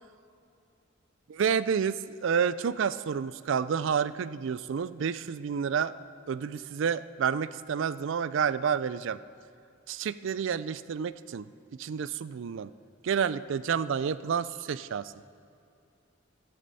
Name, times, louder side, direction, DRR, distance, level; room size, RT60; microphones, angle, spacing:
voice 1, 1.3-5.9 6.3-9.2 9.9-11.5 11.8-12.7 13.0-15.1, right 7 dB, 65° right, 16 dB, 0.4 m, -29 dB
13.0 x 13.0 x 4.1 m, 2.6 s
head